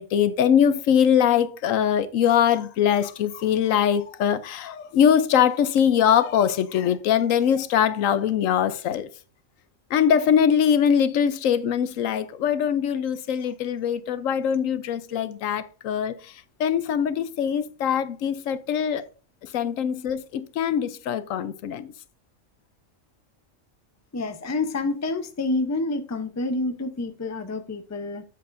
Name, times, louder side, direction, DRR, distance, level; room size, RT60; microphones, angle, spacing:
voice 1, 0.0-9.1 9.9-16.1 16.6-19.0 19.5-21.9, left 8 dB, 80° left, 1.0 m, -22 dB
voice 2, 24.1-28.2, left 2 dB, 20° left, 0.5 m, -28 dB
8.3 x 7.7 x 2.6 m
omnidirectional pair, 1.4 m